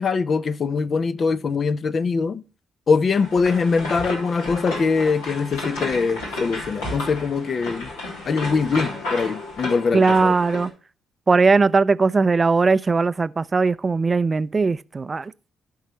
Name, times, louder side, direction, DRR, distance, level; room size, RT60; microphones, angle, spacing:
voice 1, 0.0-2.4 2.9-7.9 8.3-10.3, left 5 dB, 50° left, 0.8 m, -22 dB
sound 1, 3.1-10.7, left 2 dB, 80° left, 2.9 m, -32 dB
voice 2, 9.9-10.7 11.3-15.3, right 4 dB, 35° right, 0.5 m, -19 dB
15.0 x 5.6 x 3.1 m
hypercardioid pair, 40°, 0 cm